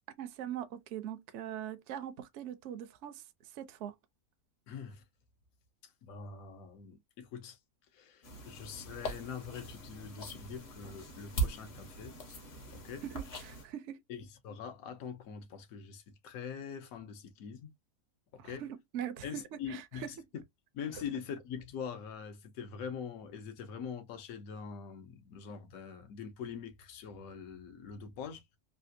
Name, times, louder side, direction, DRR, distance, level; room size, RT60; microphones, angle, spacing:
voice 1, 0.2-3.2 3.5-3.9 13.0-14.0 18.4-20.1, right 10 dB, 65° right, 0.8 m, -42 dB
voice 2, 4.7-5.0 5.8-7.6 7.9-12.1 12.6-13.0 14.1-17.7 18.3-18.6 19.2-20.2 20.7-28.4, left 7 dB, 70° left, 1.2 m, -43 dB
sound 1, 8.2-13.6, right 3 dB, 50° left, 1.0 m, -40 dB
3.4 x 2.4 x 2.6 m
omnidirectional pair, 1.6 m